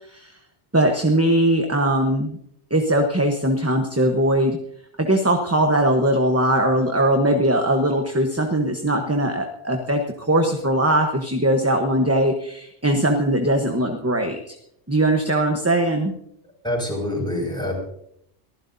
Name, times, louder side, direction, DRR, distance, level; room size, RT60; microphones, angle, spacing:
voice 1, 0.7-2.4 2.7-4.6 5.0-14.6 14.9-16.1, right 1 dB, 15° right, 4 dB, 1.0 m, -20 dB
voice 2, 16.6-17.8, left 1 dB, 5° left, -2 dB, 5.8 m, -25 dB
23.5 x 14.5 x 2.7 m, 0.73 s
omnidirectional pair, 1.2 m